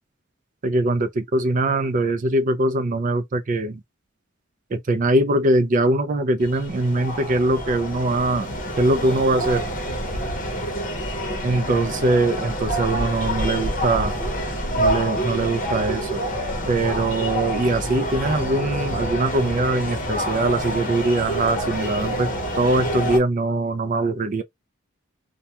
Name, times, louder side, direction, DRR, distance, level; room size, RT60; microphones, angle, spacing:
voice 1, 0.6-3.8 4.7-8.5 8.8-9.6 11.4-14.1 14.8-16.2 16.7-22.3 22.6-24.4, right 2 dB, 40° right, 0.4 m, -22 dB
sound 1, 6.4-23.2, equal, 40° left, 0.7 m, -27 dB
2.2 x 2.2 x 2.8 m
head